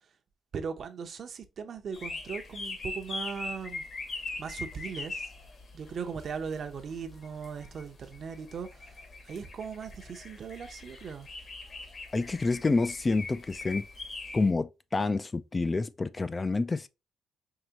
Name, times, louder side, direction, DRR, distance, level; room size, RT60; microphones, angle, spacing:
voice 1, 0.5-3.8 4.4-5.3 5.7-8.9 9.2-11.3, right 6 dB, 55° right, 0.7 m, -38 dB
sound 1, 1.9-14.5, left 3 dB, 50° left, 1.2 m, -42 dB
voice 2, 12.1-13.9 14.3-16.9, left 3 dB, 25° left, 0.3 m, -28 dB
4.8 x 3.0 x 2.8 m
cardioid pair, 90°, 0 cm